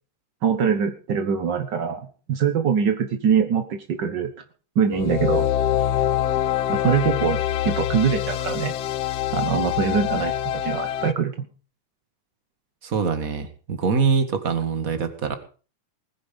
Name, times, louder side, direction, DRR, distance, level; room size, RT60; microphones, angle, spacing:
voice 1, 0.4-4.3 4.7-5.5 6.7-7.4 7.6-8.7 9.3-11.5, right 7 dB, 70° right, 7 dB, 1.0 m, -23 dB
sound 1, 4.9-11.1, left 12 dB, 75° left, 1.5 m, -25 dB
voice 2, 12.8-15.4, right 5 dB, 35° right, 9 dB, 1.5 m, -24 dB
20.0 x 10.0 x 5.2 m, 0.38 s
omnidirectional pair, 3.7 m